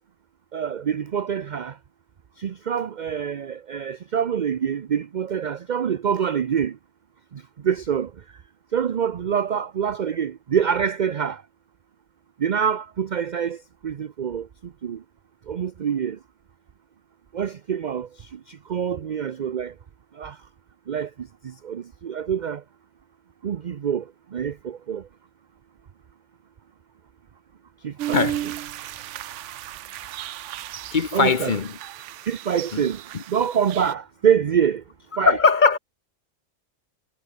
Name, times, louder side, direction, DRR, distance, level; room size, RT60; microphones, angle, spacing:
voice 1, 0.5-1.8 2.4-6.8 7.3-8.1 8.7-11.4 12.4-15.0 15.5-16.2 17.3-19.7 20.1-20.4 20.9-22.6 23.4-25.1 27.8-28.2 31.1-31.5 32.3-33.0 33.3-34.8 35.2-35.4, right 8 dB, 45° right, 0.6 m, -26 dB
sound 1, 28.0-33.9, right 13 dB, 70° right, 0.9 m, -34 dB
voice 2, 30.9-31.7 32.7-32.8 33.1-33.2 35.2-35.8, left 5 dB, 40° left, 1.0 m, -20 dB
omnidirectional pair, 1.4 m